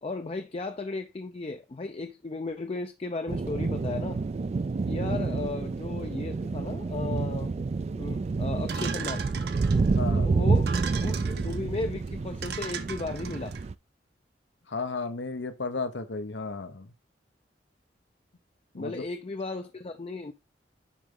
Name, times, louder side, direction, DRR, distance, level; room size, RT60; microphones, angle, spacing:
voice 1, 0.0-4.2 4.9-7.5 8.0-9.3 10.2-13.5 18.8-20.3, left 3 dB, 35° left, 0.5 m, -35 dB
sound 1, 3.3-13.7, right 4 dB, 35° right, 0.3 m, -28 dB
sound 2, 8.7-10.0 10.6-11.6 12.1-12.2 12.4-13.6, right 7 dB, 60° right, 0.9 m, -38 dB
voice 2, 10.0-10.3 14.7-16.9 18.7-19.0, left 3 dB, 80° left, 0.9 m, -34 dB
10.0 x 4.0 x 3.7 m
head